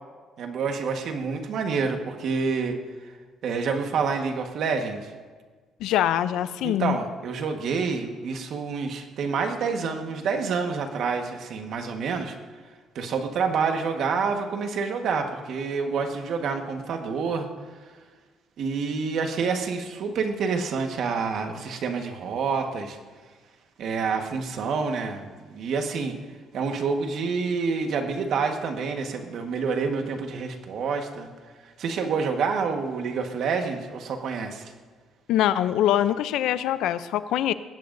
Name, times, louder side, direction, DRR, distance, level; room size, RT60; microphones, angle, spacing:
voice 1, 0.4-2.8 3.0-3.1 3.4-5.1 6.6-12.3 12.9-17.5 18.6-23.0 23.8-26.2 26.5-31.3 31.8-34.7, right 5 dB, 60° right, 4 dB, 1.5 m, -28 dB
voice 2, 5.8-7.0 35.3-37.5, left 12 dB, 80° left, 14 dB, 0.5 m, -23 dB
20.0 x 16.5 x 2.7 m, 1.5 s
cardioid pair, 130°, 0 cm